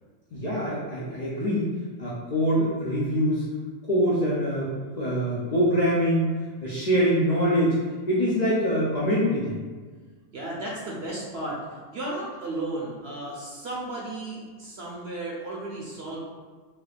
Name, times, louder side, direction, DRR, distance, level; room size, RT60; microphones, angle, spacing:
voice 1, 0.3-1.7 2.0-3.4 3.9-4.7 5.0-6.3 6.6-7.8 8.1-9.6, equal, 75° left, -7 dB, 0.4 m, -24 dB
voice 2, 10.3-11.6 11.9-16.2, right 2 dB, 60° right, -4 dB, 0.7 m, -34 dB
2.9 x 2.4 x 3.2 m, 1.5 s
omnidirectional pair, 1.4 m